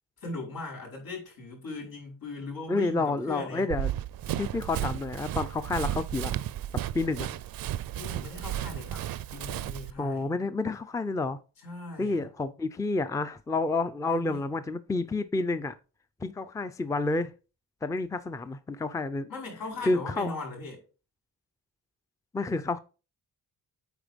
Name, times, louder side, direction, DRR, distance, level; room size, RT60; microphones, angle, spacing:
voice 1, 0.2-3.7 8.0-9.1 9.3-10.3 11.6-12.2 14.0-14.4 19.3-20.8, left 3 dB, 85° left, 5.3 m, -39 dB
voice 2, 2.7-3.9 4.4-6.4 6.9-7.4 10.0-11.4 12.0-15.7 16.2-17.3 17.8-19.3 19.9-20.3 22.3-22.8, left 3 dB, 10° left, 0.4 m, -29 dB
Run, 3.7-9.9, right 12 dB, 75° right, 0.5 m, -33 dB
9.1 x 4.4 x 5.1 m
wide cardioid pair, 145°, 35 cm